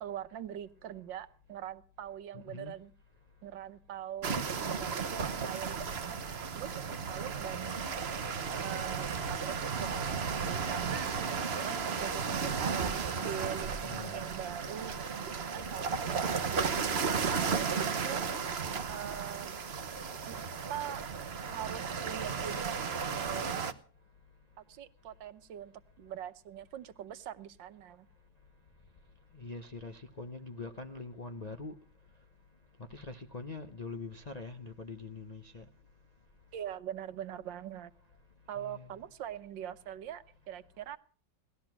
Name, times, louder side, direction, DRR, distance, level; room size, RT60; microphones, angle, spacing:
voice 1, 0.0-2.9 3.4-6.2 6.5-6.8 7.1-7.8 8.5-14.9 15.4-18.2 18.9-19.7 20.3-20.4 20.7-21.0 21.5-22.8 23.1-23.7 24.6-28.1 36.5-37.9 38.5-41.0, right 10 dB, 90° right, 1.7 m, -43 dB
voice 2, 2.3-2.8 13.8-14.2 29.3-31.8 32.8-35.7 38.6-38.9, left 3 dB, 45° left, 0.5 m, -43 dB
sound 1, 4.2-23.7, right 5 dB, 40° right, 1.1 m, -34 dB
18.5 x 12.5 x 6.0 m
omnidirectional pair, 1.9 m